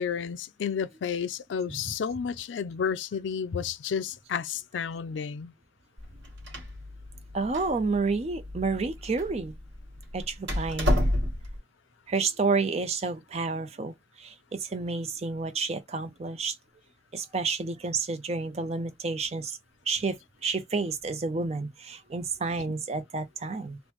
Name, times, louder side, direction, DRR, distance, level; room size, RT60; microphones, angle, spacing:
voice 1, 0.0-5.5, left 7 dB, 85° left, 0.4 m, -31 dB
Door, 6.0-11.6, left 1 dB, 75° right, 1.4 m, -31 dB
voice 2, 7.3-9.6 10.1-11.1 12.1-16.5 17.1-19.6 19.9-23.8, right 4 dB, 35° right, 0.4 m, -30 dB
3.2 x 2.0 x 3.0 m
head